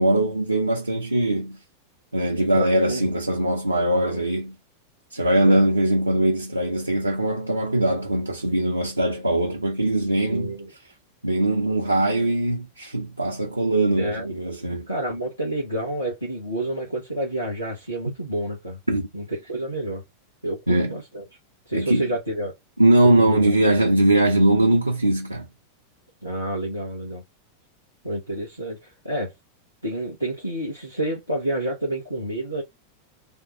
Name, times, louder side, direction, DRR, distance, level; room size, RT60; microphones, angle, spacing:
voice 1, 0.0-1.6 2.1-4.6 5.1-10.5 11.2-14.9 18.1-18.2 18.9-19.1 20.7-21.0 21.7-22.0 22.8-25.5, right 1 dB, 85° right, 0.5 m, -21 dB
voice 2, 2.5-3.1 3.7-4.2 5.4-5.7 10.3-10.7 13.9-14.3 14.9-18.8 19.1-20.0 20.4-21.2 21.7-22.5 23.2-23.6 26.2-27.2 28.0-29.3 29.8-32.6, right 1 dB, 85° left, 1.1 m, -29 dB
3.5 x 2.3 x 4.2 m
figure-of-eight pair, 90°, 0 cm